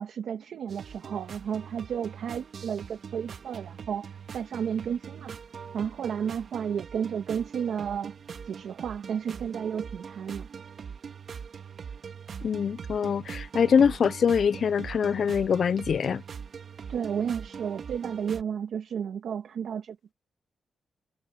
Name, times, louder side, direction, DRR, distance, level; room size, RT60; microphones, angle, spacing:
voice 1, 0.0-5.4 5.7-8.1 8.4-10.5 16.9-20.1, right 8 dB, 75° right, 1.5 m, -32 dB
sound 1, 0.7-18.4, right 6 dB, 55° right, 1.8 m, -42 dB
voice 2, 12.4-16.2, left 7 dB, 55° left, 0.3 m, -24 dB
wide cardioid pair, 140°, 0 cm